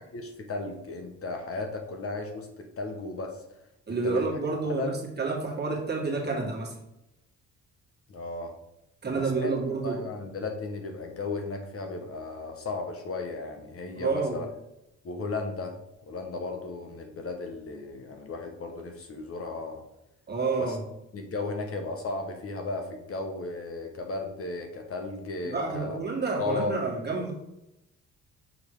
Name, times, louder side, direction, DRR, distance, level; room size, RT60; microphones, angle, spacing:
voice 1, 0.0-3.4 3.9-4.2 4.6-4.9 8.1-8.5 9.1-9.5 9.8-14.5 15.0-15.8 16.1-19.8 20.6-20.8 21.1-26.0 26.4-26.7, left 3 dB, 50° left, 4 dB, 1.2 m, -35 dB
voice 2, 3.9-6.7 9.0-10.0 14.0-14.4 20.3-20.8 25.5-27.3, right 3 dB, 35° right, -1 dB, 2.0 m, -29 dB
6.5 x 3.3 x 4.7 m, 0.88 s
cardioid pair, 90°, 30 cm